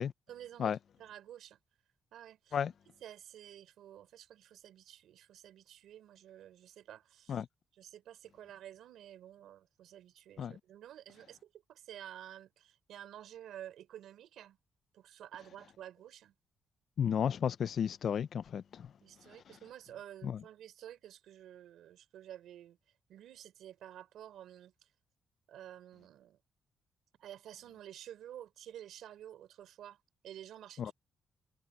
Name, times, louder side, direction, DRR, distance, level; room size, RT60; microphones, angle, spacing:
voice 1, 0.3-1.6 2.1-2.6 3.0-7.4 7.7-14.6 14.9-16.4 19.0-22.8 23.1-24.9 25.5-26.4 27.2-30.9, right 11 dB, 90° right, 3.7 m, -51 dB
voice 2, 17.0-18.9 20.2-20.4 30.8-30.9, left 8 dB, 55° left, 0.5 m, -33 dB
cardioid pair, 135°, 0 cm